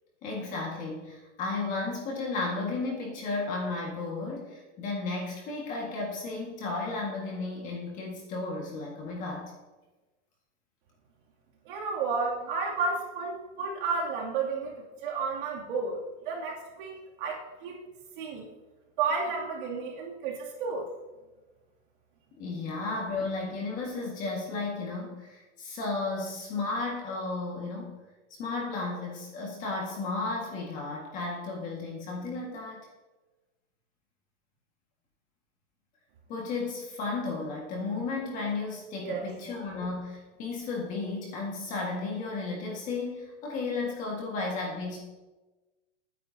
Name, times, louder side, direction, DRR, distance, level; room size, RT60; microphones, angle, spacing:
voice 1, 0.2-9.5 22.4-28.0 28.4-32.9 36.3-45.0, left 3 dB, 20° left, -2 dB, 1.8 m, -34 dB
voice 2, 11.6-16.0 16.2-17.8 18.2-18.5 19.0-20.9 39.0-39.3, right 4 dB, 45° right, -3 dB, 2.7 m, -32 dB
23.5 x 9.6 x 2.8 m, 1.2 s
supercardioid pair, 175°, 36 cm